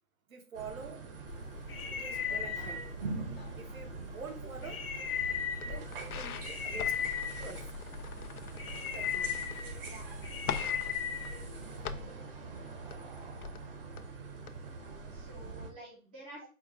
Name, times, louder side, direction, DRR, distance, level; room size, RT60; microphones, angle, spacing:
voice 1, 0.3-1.0 1.9-2.8 3.6-4.8 5.6-6.9 7.4-7.6 8.9-9.3 16.4-16.5, right 5 dB, 70° right, 4 dB, 1.2 m, -46 dB
sound 1, 0.5-15.7, right 4 dB, 40° right, 0.9 m, -44 dB
sound 2, 1.3-11.9, left 7 dB, 45° left, 0.8 m, -38 dB
sound 3, 4.9-5.3 5.6-9.9 10.2-12.2 12.7-14.0 14.4-14.5 15.0-15.1, left 7 dB, 90° left, 0.6 m, -42 dB
voice 2, 9.8-10.9 14.7-16.5, right 1 dB, 5° right, -4 dB, 0.5 m, -52 dB
4.6 x 2.3 x 4.7 m, 0.38 s
hypercardioid pair, 145°, 42 cm